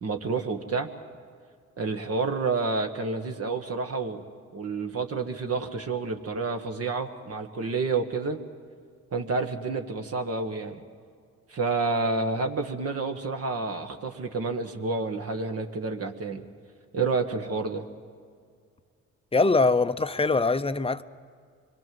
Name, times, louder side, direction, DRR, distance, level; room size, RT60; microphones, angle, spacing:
voice 1, 0.0-0.9 1.8-4.2 4.5-8.4 9.1-10.8 11.5-16.5 16.9-17.8, right 4 dB, 50° right, 1.7 m, -29 dB
voice 2, 19.3-21.0, left 3 dB, 20° left, 0.7 m, -23 dB
25.5 x 22.5 x 7.8 m
cardioid pair, 90°, 30 cm